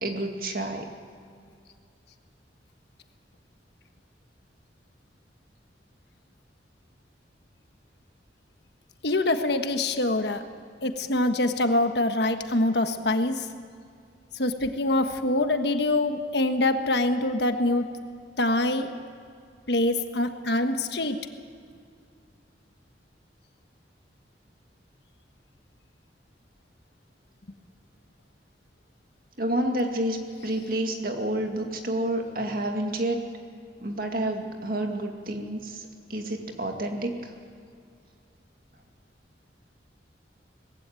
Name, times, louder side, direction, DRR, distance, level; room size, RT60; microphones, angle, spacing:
voice 1, 0.0-0.9 29.4-33.2 33.8-37.2, right 1 dB, 55° right, 3 dB, 2.2 m, -29 dB
voice 2, 9.0-10.4 10.8-13.5 14.3-17.9 18.4-18.9 19.7-21.2, left 2 dB, 70° left, 7 dB, 1.4 m, -24 dB
20.0 x 16.0 x 9.0 m, 2.3 s
head